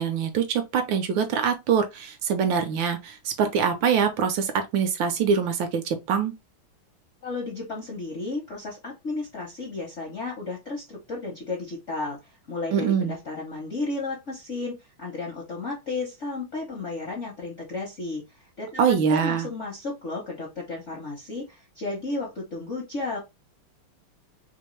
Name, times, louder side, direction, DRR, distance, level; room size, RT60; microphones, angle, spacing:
voice 1, 0.0-6.3 12.7-13.1 18.8-19.5, right 7 dB, 75° right, 1.2 m, -24 dB
voice 2, 7.2-23.2, left 3 dB, 60° left, 0.7 m, -33 dB
3.4 x 2.6 x 3.0 m
omnidirectional pair, 2.3 m